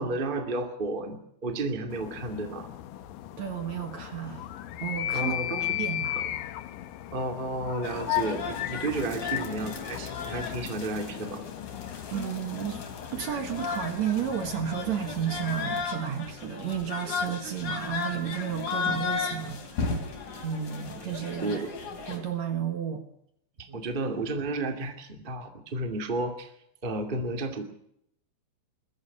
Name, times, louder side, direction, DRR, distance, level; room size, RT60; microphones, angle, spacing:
voice 1, 0.0-2.7 5.1-5.7 6.1-6.2 7.1-11.4 21.4-21.7 23.6-26.5 26.8-27.6, right 2 dB, 85° right, 6 dB, 0.4 m, -32 dB
sound 1, 1.9-15.8, left 13 dB, 80° left, 1.9 m, -36 dB
voice 2, 3.4-4.5 4.8-5.3 5.7-6.2 12.1-12.8 13.1-19.9 20.4-21.6 22.1-23.1 23.7-23.8, right 9 dB, 60° right, 8 dB, 2.0 m, -32 dB
sound 2, 7.8-22.2, left 5 dB, 45° left, 4.4 m, -35 dB
21.5 x 14.0 x 9.9 m, 0.75 s
omnidirectional pair, 5.3 m